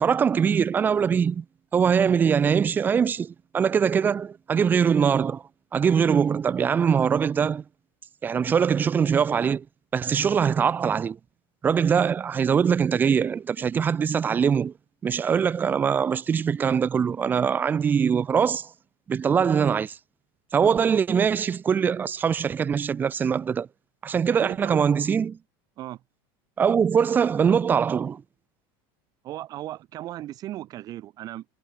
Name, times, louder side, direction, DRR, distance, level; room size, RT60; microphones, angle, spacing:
voice 1, 0.0-1.4 1.7-5.4 5.7-7.6 8.2-9.6 9.9-11.2 11.6-14.7 15.0-18.7 19.1-20.0 20.5-23.7 24.0-25.4 26.6-28.2, right 7 dB, 15° right, 0.7 m, -22 dB
voice 2, 24.3-24.8 25.8-26.0 29.2-31.4, right 14 dB, 30° right, 2.3 m, -36 dB
cardioid pair, 175°, 12 cm